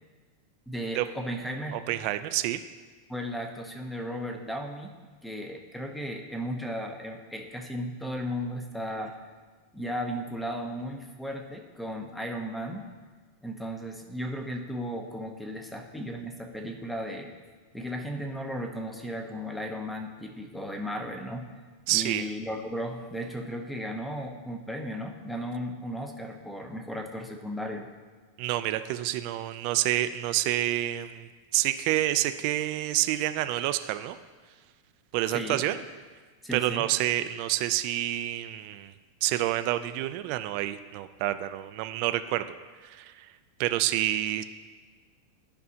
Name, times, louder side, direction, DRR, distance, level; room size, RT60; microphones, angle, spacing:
voice 1, 0.7-1.8 3.1-4.9 5.2-9.1 9.7-12.9 13.4-17.3 17.7-21.5 21.9-27.9 35.3-35.6 36.4-36.9, equal, 5° left, 4 dB, 0.7 m, -35 dB
voice 2, 1.7-2.6 21.9-22.2 28.4-34.2 35.1-35.8 36.5-38.9 39.2-42.4 42.8-43.3 43.6-44.4, right 14 dB, 50° right, 10 dB, 0.3 m, -28 dB
12.0 x 5.4 x 2.8 m, 1.4 s
supercardioid pair, 150°, 0 cm